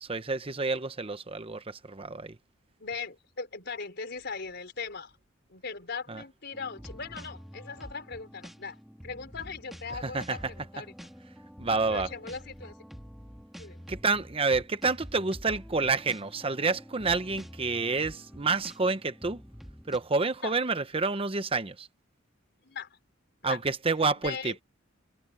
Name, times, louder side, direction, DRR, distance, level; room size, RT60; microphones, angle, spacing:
voice 1, 0.0-2.4 6.1-6.2 10.0-10.4 11.6-12.1 13.9-19.4 19.9-21.9 23.4-24.5, right 4 dB, 30° right, 0.9 m, -29 dB
voice 2, 2.8-5.1 5.5-8.8 9.0-10.9 11.9-12.8 13.6-13.8 20.4-20.6 22.6-22.9 23.4-23.6 24.2-24.5, left 5 dB, 60° left, 4.5 m, -39 dB
sound 1, 6.5-20.0, equal, ahead, 1.8 m, -47 dB
head